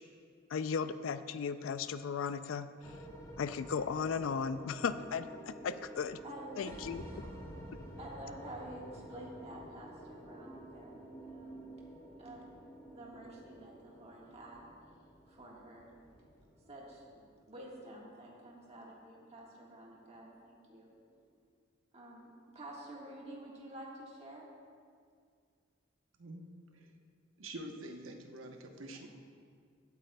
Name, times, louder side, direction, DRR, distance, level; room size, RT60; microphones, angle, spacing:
voice 1, 0.5-2.7 3.4-6.2 6.6-7.0, left 6 dB, 75° left, 13 dB, 0.4 m, -36 dB
sound 1, 2.8-21.2, right 1 dB, 20° left, 1.3 m, -51 dB
voice 2, 6.2-6.7 7.1-7.3 8.0-11.0 11.3-11.6 12.2-12.4 12.9-14.6 15.3-15.9 16.7-17.2 17.5-20.9 21.9-22.3 22.5-24.5 28.9-29.1, right 1 dB, 30° right, -3 dB, 1.5 m, -49 dB
voice 3, 27.4-29.1, right 1 dB, 75° right, 3 dB, 0.9 m, -46 dB
16.5 x 8.9 x 2.3 m, 2.1 s
head